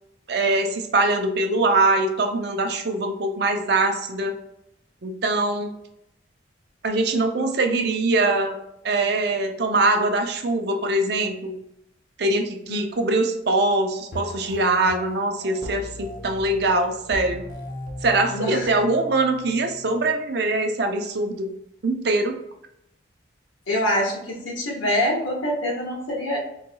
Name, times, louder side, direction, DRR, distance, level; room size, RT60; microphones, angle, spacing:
voice 1, 0.3-4.3 5.0-5.7 6.8-8.6 8.8-11.6 12.2-17.4 18.0-21.5 21.8-22.3, right 2 dB, 55° right, 5 dB, 0.5 m, -22 dB
voice 2, 12.7-13.1 18.3-18.7 23.7-26.4, left 1 dB, 90° left, -3 dB, 1.3 m, -25 dB
sound 1, 14.1-20.1, left 1 dB, 45° left, 0.6 m, -38 dB
3.9 x 3.0 x 2.2 m, 0.78 s
head